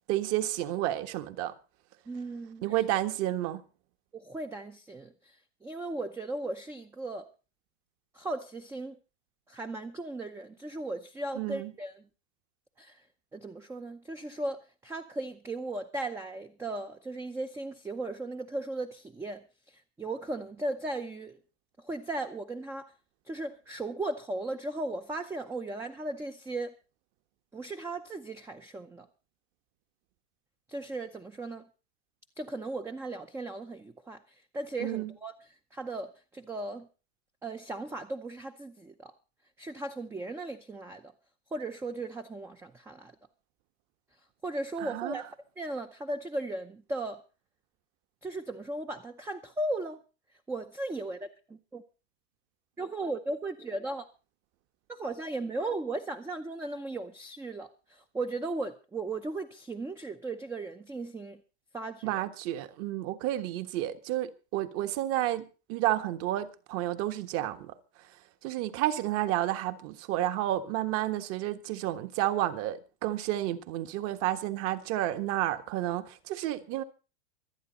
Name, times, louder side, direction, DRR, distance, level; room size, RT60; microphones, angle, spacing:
voice 1, 0.1-1.5 2.6-3.6 11.4-11.7 34.8-35.1 44.8-45.2 62.0-67.7 68.4-76.8, right 14 dB, 40° right, 1.5 m, -31 dB
voice 2, 2.1-2.9 4.1-7.3 8.1-9.0 9.5-12.0 12.8-13.1 13.3-21.4 21.8-22.9 23.3-26.7 27.5-29.1 30.7-31.7 32.4-36.9 37.4-39.1 39.6-41.1 41.5-43.2 44.4-45.2 45.6-47.2 48.2-50.0 50.5-51.8 52.8-54.1 54.9-61.4 61.7-62.3, right 2 dB, 5° right, 0.6 m, -37 dB
25.0 x 9.0 x 4.1 m
supercardioid pair, 140°, 34 cm